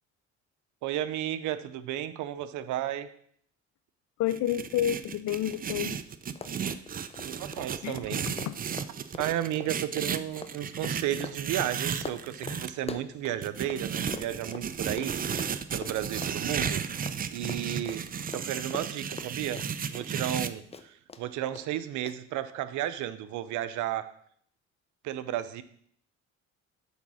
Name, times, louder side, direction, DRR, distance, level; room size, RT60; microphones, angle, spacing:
voice 1, 0.8-3.1 7.2-8.3 9.2-15.1 15.7-16.8 17.3-19.6 19.9-24.1 25.0-25.6, right 12 dB, 85° right, 13 dB, 0.6 m, -33 dB
voice 2, 4.2-6.0 7.8-8.0 8.5-8.6, left 11 dB, 75° left, 14 dB, 0.5 m, -29 dB
sound 1, 4.3-12.7 13.4-20.5, right 7 dB, 30° right, 0.4 m, -34 dB
Run, 5.5-5.6 5.9-6.0 6.3-13.8 14.1-20.4 20.7-21.2 21.6-21.7 22.1-22.2, left 4 dB, 20° left, 0.6 m, -42 dB
8.2 x 3.6 x 6.1 m, 0.64 s
cardioid pair, 95°, 29 cm